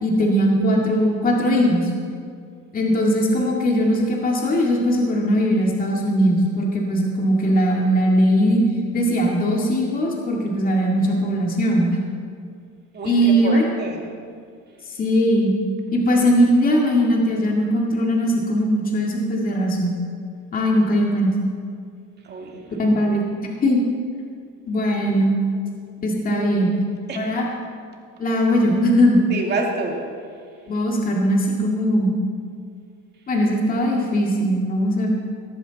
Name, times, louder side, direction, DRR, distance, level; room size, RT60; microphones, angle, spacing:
voice 1, 0.0-1.9 2.7-8.6 8.9-12.0 13.0-13.7 15.0-15.5 15.9-19.9 20.5-21.3 22.8-23.2 23.6-23.8 24.7-25.3 26.0-26.7 27.1-27.5 28.2-29.2 30.7-32.1 33.3-35.1, equal, 30° left, -1 dB, 2.1 m, -19 dB
voice 2, 12.9-14.1 22.3-22.7 26.3-26.5 27.1-27.4 29.3-30.0, right 3 dB, 35° right, 1 dB, 2.3 m, -28 dB
19.0 x 14.0 x 4.1 m, 2.2 s
cardioid pair, 150°, 31 cm